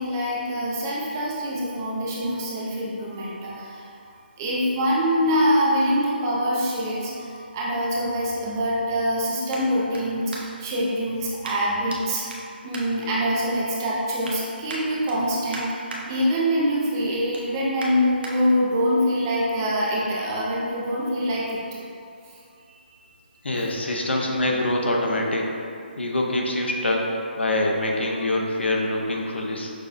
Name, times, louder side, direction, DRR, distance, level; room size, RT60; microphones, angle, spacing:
voice 1, 0.0-3.9 4.4-12.4 12.6-21.6 22.6-22.7 23.5-23.6, equal, 20° right, -5 dB, 0.4 m, -24 dB
sound 1, 9.5-10.8 11.4-12.0 12.3-13.6 13.9-14.4 14.7-16.0 16.4-16.7 17.0-18.3 18.9-19.0, right 2 dB, 65° right, 0.7 m, -40 dB
voice 2, 23.4-25.5 26.0-29.7, left 1 dB, 85° left, -1 dB, 0.7 m, -25 dB
6.0 x 2.1 x 2.5 m, 2.4 s
hypercardioid pair, 160°, 6 cm